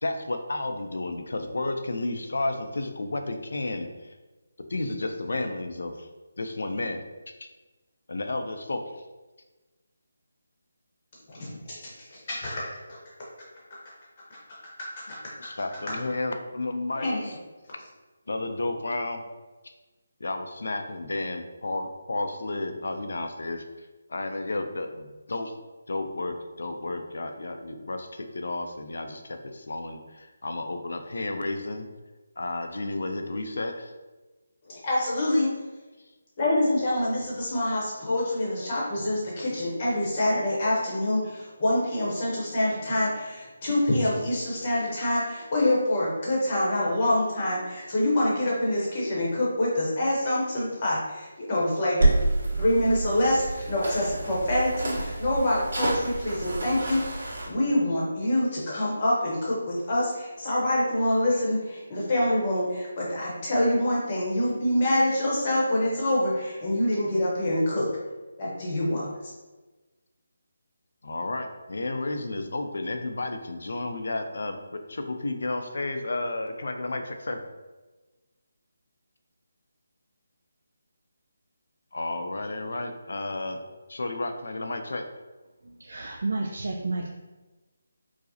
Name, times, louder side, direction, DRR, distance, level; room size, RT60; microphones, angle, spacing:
voice 1, 0.0-4.1 4.7-6.1 6.4-7.0 7.4-7.5 8.1-9.0 15.4-17.1 18.3-19.2 20.2-23.6 24.1-25.5 25.9-31.9 32.4-33.9 71.0-77.4 81.9-83.6 83.9-85.0, left 2 dB, 65° left, 6 dB, 0.4 m, -32 dB
voice 2, 11.3-13.0 14.3-15.3 17.0-17.2 34.7-35.5 36.4-52.1 52.6-67.9 68.4-69.1, left 1 dB, 25° left, -5 dB, 0.8 m, -26 dB
sound 1, 52.0-57.5, right 2 dB, 70° right, 1.4 m, -28 dB
voice 3, 85.6-87.1, right 2 dB, 50° right, 0 dB, 0.3 m, -31 dB
4.7 x 2.0 x 2.7 m, 1.2 s
hypercardioid pair, 180°, 0 cm